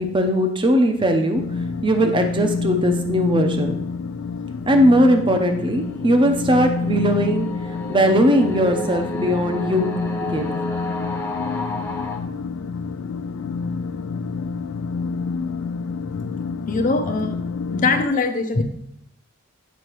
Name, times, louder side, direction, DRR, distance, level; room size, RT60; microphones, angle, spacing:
voice 1, 0.0-1.4 1.8-3.7 4.7-7.5 7.9-9.9 10.3-10.5, equal, 25° right, 5 dB, 0.7 m, -19 dB
sound 1, 1.3-18.1, left 4 dB, 70° left, 0.3 m, -28 dB
sound 2, 5.7-12.2, left 1 dB, 10° left, 0.9 m, -32 dB
voice 2, 16.7-17.4 17.7-18.6, left 3 dB, 40° left, 6 dB, 0.6 m, -21 dB
8.2 x 5.8 x 3.0 m, 0.74 s
head